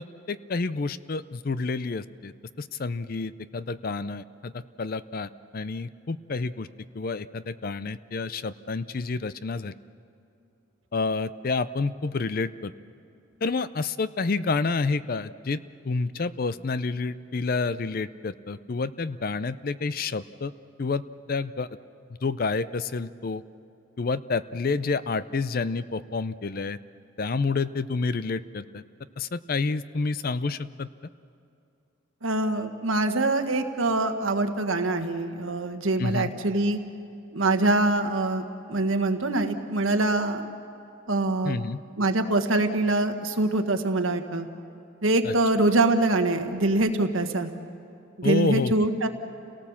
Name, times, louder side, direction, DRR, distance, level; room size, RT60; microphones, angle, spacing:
voice 1, 0.0-6.7 6.9-9.7 10.9-12.7 13.4-15.6 15.8-20.5 20.8-21.0 21.3-21.7 22.2-23.4 24.0-26.8 27.2-28.8 29.2-30.9 36.0-36.3 41.4-41.8 45.2-45.3 48.2-48.7, left 4 dB, 45° left, 15 dB, 0.5 m, -29 dB
voice 2, 32.2-36.8 37.3-40.5 41.1-41.6 42.0-44.5 45.0-47.5 48.2-49.1, right 2 dB, 75° right, 7 dB, 1.5 m, -24 dB
29.5 x 18.0 x 7.2 m, 2.6 s
head